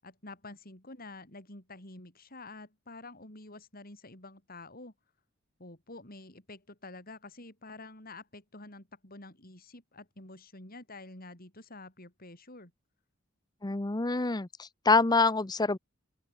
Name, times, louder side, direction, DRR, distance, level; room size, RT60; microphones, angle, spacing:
voice 1, 0.0-4.9 5.6-12.7, left 2 dB, 50° left, 7.4 m, -48 dB
voice 2, 13.6-15.8, left 3 dB, 20° left, 0.7 m, -26 dB
open air
head